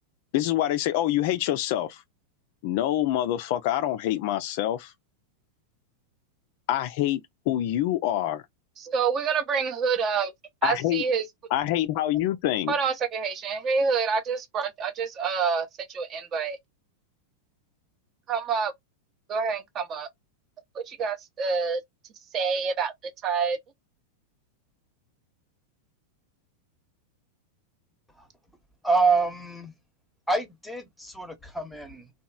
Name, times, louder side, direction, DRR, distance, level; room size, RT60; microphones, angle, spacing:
voice 1, 0.3-2.0 2.6-4.9 6.7-7.2 7.5-8.4 10.6-11.0 11.5-12.7, left 13 dB, 50° left, 0.3 m, -26 dB
voice 2, 8.8-10.3 10.6-11.2 12.7-16.6 18.3-18.7 19.3-20.1 20.7-21.8 22.3-22.9 23.2-23.6, right 5 dB, 30° right, 0.5 m, -27 dB
voice 3, 28.8-29.7 30.3-32.1, right 4 dB, ahead, 0.8 m, -26 dB
2.8 x 2.2 x 2.3 m
figure-of-eight pair, 90°, 0 cm